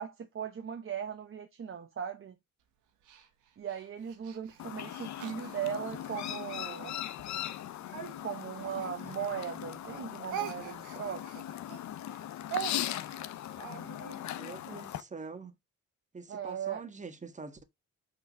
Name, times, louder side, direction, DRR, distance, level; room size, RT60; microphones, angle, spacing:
voice 1, 0.0-2.3 3.6-7.0 8.2-11.5 16.3-16.8, right 8 dB, 45° right, 1.1 m, -38 dB
Speech, 3.0-6.2 6.7-9.6 9.8-14.2, right 9 dB, 85° right, 1.5 m, -43 dB
Chirp tweet, 4.6-15.0, left 12 dB, 70° left, 0.8 m, -39 dB
voice 2, 14.3-15.5 16.1-17.6, right 4 dB, 25° right, 1.5 m, -44 dB
6.0 x 3.7 x 5.8 m
cardioid pair, 90°, 30 cm